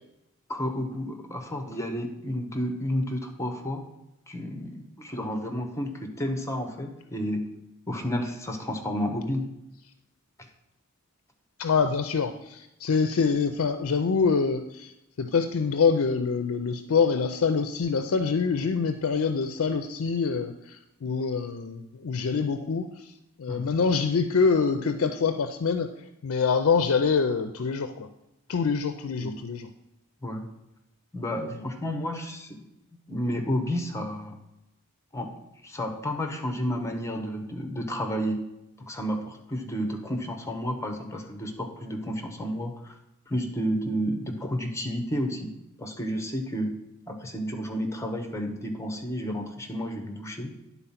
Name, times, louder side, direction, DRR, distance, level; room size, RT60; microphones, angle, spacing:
voice 1, 0.5-3.9 4.3-7.4 7.9-9.4 10.4-10.5 23.5-23.7 29.2-29.4 30.2-30.4 31.1-32.6 33.1-34.4 35.1-35.3 35.6-38.4 38.8-42.9 43.3-45.5 45.8-46.7 47.1-50.5, equal, 15° left, 4 dB, 0.9 m, -31 dB
voice 2, 11.6-23.1 23.4-25.9 26.2-28.1 28.5-29.7 31.6-31.7, left 5 dB, 65° left, 8 dB, 0.5 m, -25 dB
10.0 x 4.1 x 5.7 m, 0.88 s
head